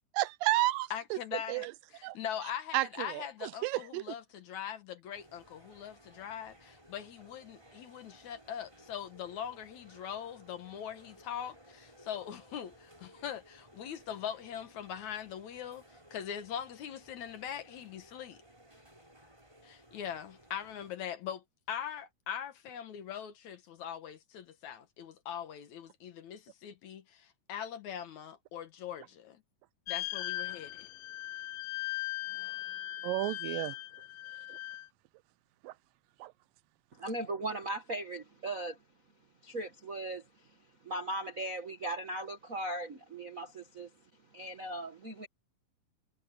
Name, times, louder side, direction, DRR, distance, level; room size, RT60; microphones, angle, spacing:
voice 1, 0.1-1.2 1.5-1.7 2.0-2.2 2.7-4.2 33.0-33.8 34.5-34.6 35.6-35.7 36.2-36.3, right 18 dB, 85° right, 2.3 m, -32 dB
voice 2, 0.9-1.7 1.9-15.8 16.1-18.4 19.6-29.4 29.9-30.9, left 9 dB, 65° left, 2.4 m, -41 dB
sound 1, 5.1-20.9, right 1 dB, 10° right, 4.4 m, -59 dB
sound 2, 29.9-34.9, left 16 dB, 90° left, 2.6 m, -39 dB
voice 3, 37.0-38.8 39.4-40.2 40.8-43.9 44.3-45.3, right 1 dB, 55° right, 0.8 m, -38 dB
omnidirectional pair, 4.0 m